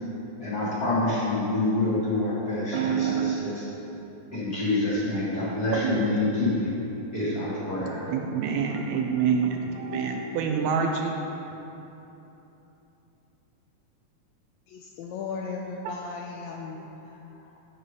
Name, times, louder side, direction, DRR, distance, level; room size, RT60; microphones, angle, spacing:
voice 1, 0.4-3.5 4.3-6.8 7.1-8.0, left 2 dB, 35° left, -8 dB, 2.3 m, -27 dB
voice 2, 2.7-3.4 5.7-6.2 7.8-11.2 11.5-11.6 15.8-16.0 16.8-16.9, right 6 dB, 75° right, 3 dB, 1.8 m, -27 dB
voice 3, 14.7-16.8 17.0-17.6, left 5 dB, 80° left, 0 dB, 1.6 m, -37 dB
8.2 x 7.5 x 5.4 m, 3.0 s
omnidirectional pair, 3.5 m